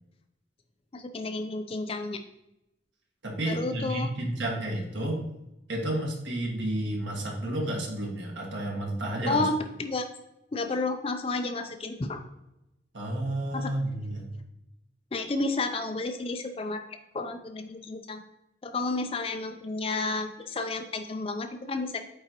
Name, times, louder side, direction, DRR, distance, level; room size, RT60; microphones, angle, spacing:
voice 1, 0.9-2.2 3.5-4.1 9.3-10.1 10.5-12.2 13.5-13.7 15.1-16.8 17.1-18.2 18.6-22.0, left 3 dB, 30° left, 7 dB, 0.4 m, -31 dB
voice 2, 3.2-5.2 5.7-9.5 12.9-14.4, right 1 dB, 75° right, -1 dB, 1.5 m, -31 dB
8.5 x 3.8 x 3.0 m, 0.89 s
head